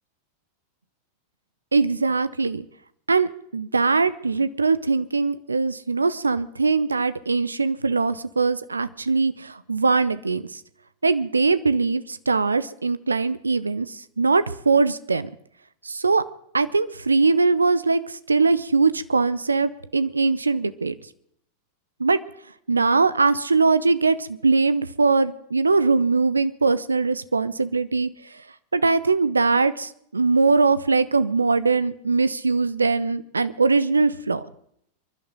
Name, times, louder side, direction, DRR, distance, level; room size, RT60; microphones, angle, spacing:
voice 1, 1.7-2.6 3.1-10.4 11.0-15.3 15.8-16.2 16.5-20.9 22.0-22.2 22.7-28.1 28.7-34.5, right 4 dB, 80° right, 16 dB, 0.7 m, -21 dB
27.0 x 12.0 x 3.9 m, 0.71 s
figure-of-eight pair, 90°, 0 cm